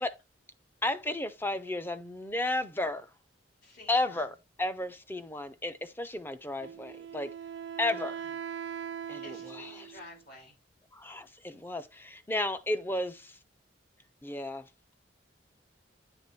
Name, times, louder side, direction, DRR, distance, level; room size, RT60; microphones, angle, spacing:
voice 1, 0.8-3.1 3.9-7.3 7.8-8.2 9.1-10.0 10.9-13.4 14.2-14.6, left 2 dB, 10° left, 0.5 m, -33 dB
voice 2, 3.6-4.2 7.8-8.2 9.2-10.5, left 2 dB, 55° left, 2.9 m, -51 dB
Wind instrument woodwind instrument, 6.6-10.2, right 8 dB, 65° right, 0.4 m, -41 dB
8.9 x 3.4 x 4.2 m
head